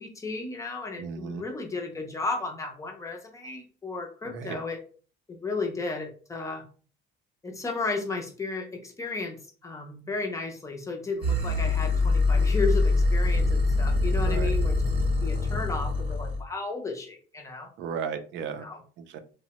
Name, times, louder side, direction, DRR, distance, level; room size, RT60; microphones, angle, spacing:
voice 1, 0.0-4.8 5.3-6.6 7.4-9.4 9.6-17.7 18.6-18.8, left 3 dB, 15° left, 3 dB, 0.4 m, -34 dB
voice 2, 1.0-1.4 4.2-4.6 14.3-14.5 17.8-18.7 19.0-19.2, right 6 dB, 65° right, 8 dB, 0.4 m, -35 dB
sound 1, 11.2-16.4, left 2 dB, 25° right, 0.7 m, -24 dB
2.9 x 2.0 x 2.8 m, 0.39 s
cardioid pair, 160°, 20 cm